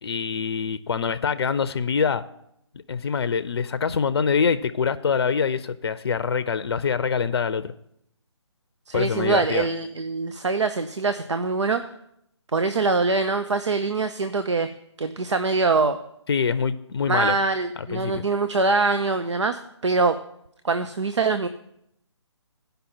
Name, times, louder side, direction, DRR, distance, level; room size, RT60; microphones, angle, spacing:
voice 1, 0.0-2.2 2.9-7.7 8.9-9.7 16.3-17.4 17.9-18.2, left 6 dB, 55° left, 13 dB, 0.5 m, -24 dB
voice 2, 8.9-11.8 12.5-14.7 15.0-16.0 17.1-20.2 20.6-21.5, right 3 dB, 75° right, 9 dB, 0.6 m, -23 dB
15.5 x 5.3 x 4.4 m, 0.78 s
figure-of-eight pair, 145°, 15 cm